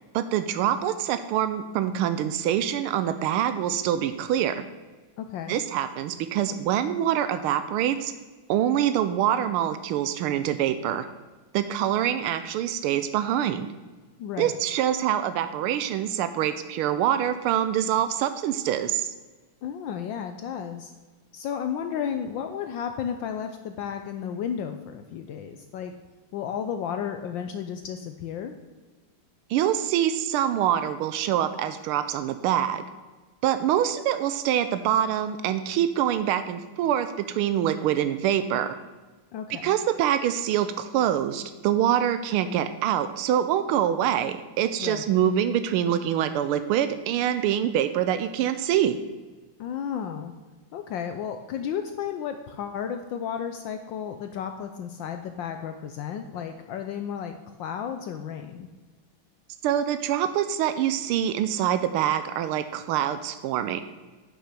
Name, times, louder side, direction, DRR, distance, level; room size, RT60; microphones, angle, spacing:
voice 1, 0.1-4.7 5.5-8.1 8.5-11.1 11.5-13.7 14.4-19.1 29.5-32.8 33.4-38.8 39.6-49.0 59.6-63.8, right 10 dB, 90° right, 11 dB, 1.5 m, -25 dB
voice 2, 5.2-5.6 14.2-14.6 19.6-20.9 21.3-25.9 26.3-28.6 39.3-39.8 44.8-45.0 49.6-50.3 50.7-57.3 57.6-58.7, left 8 dB, 75° left, 7 dB, 1.3 m, -33 dB
9.1 x 6.3 x 6.7 m, 1.3 s
omnidirectional pair, 2.3 m